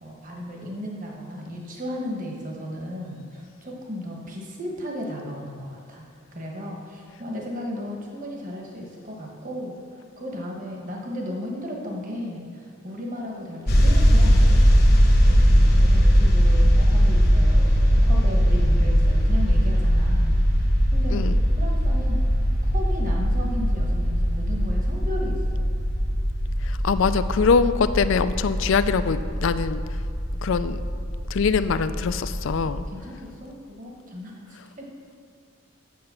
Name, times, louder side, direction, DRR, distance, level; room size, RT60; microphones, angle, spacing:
voice 1, 0.0-6.1 6.3-9.8 10.2-14.6 15.2-20.6 20.9-21.3 21.6-22.2 22.6-25.8 32.7-34.5 34.8-34.9, left 1 dB, 40° right, -1 dB, 1.2 m, -35 dB
sound 1, 13.7-32.8, equal, 50° left, 1.1 m, -20 dB
voice 2, 26.6-29.8 30.4-30.8 31.3-32.8, left 5 dB, 70° left, 13 dB, 0.4 m, -23 dB
7.8 x 6.5 x 7.0 m, 2.3 s
head